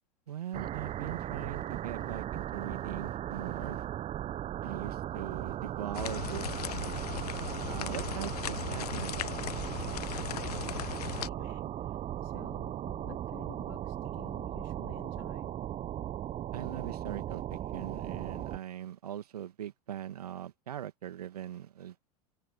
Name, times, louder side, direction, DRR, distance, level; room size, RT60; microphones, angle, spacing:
voice 1, 0.3-3.9 4.6-6.4 6.7-6.8 7.4-9.4 16.5-22.0, right 10 dB, 75° right, 2.1 m, -41 dB
sound 1, 0.5-18.6, right 12 dB, 35° right, 1.0 m, -37 dB
sound 2, 5.9-11.3, left 12 dB, 75° left, 0.5 m, -38 dB
voice 2, 9.9-12.0 12.2-15.5, left 31 dB, 55° left, 4.3 m, -52 dB
figure-of-eight pair, 85°, 20 cm